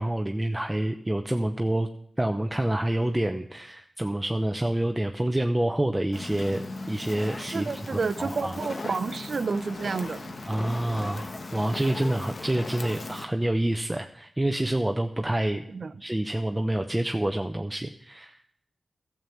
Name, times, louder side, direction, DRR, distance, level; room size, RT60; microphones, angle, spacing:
voice 1, 0.0-1.9 2.2-8.6 10.5-15.7 16.0-18.4, right 1 dB, 15° right, 5 dB, 0.8 m, -27 dB
Fire, 6.1-13.2, left 3 dB, 60° left, 1.2 m, -38 dB
voice 2, 7.5-10.3 15.7-15.9, right 4 dB, 70° right, 13 dB, 0.7 m, -30 dB
12.5 x 7.5 x 7.1 m, 0.68 s
cardioid pair, 60°, 0 cm